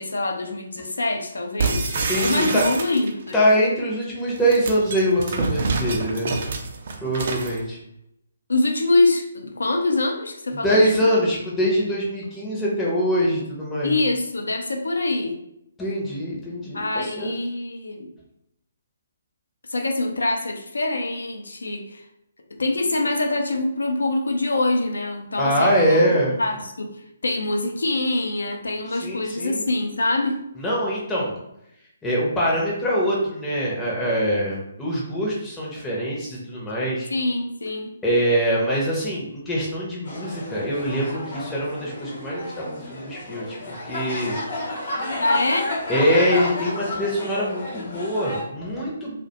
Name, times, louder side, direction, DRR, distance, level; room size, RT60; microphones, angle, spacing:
voice 1, 0.0-3.3 8.5-11.1 13.8-15.4 16.7-18.1 19.7-22.0 22.6-26.1 26.4-26.9 27.2-30.4 37.1-37.9 45.2-45.7, left 2 dB, 75° left, 4 dB, 0.4 m, -24 dB
sound 1, 1.6-3.3 4.3-7.6, right 4 dB, 50° right, 0.4 m, -27 dB
voice 2, 1.9-2.6 3.3-6.3 7.0-7.8 10.5-13.9 15.8-17.4 25.4-26.3 28.9-29.6 30.6-31.3 32.0-37.1 38.0-44.4 45.9-49.2, equal, 10° left, -6 dB, 0.6 m, -23 dB
sound 2, 40.0-48.4, left 1 dB, 55° left, 0.8 m, -31 dB
2.2 x 2.1 x 2.7 m, 0.80 s
figure-of-eight pair, 140°, 0 cm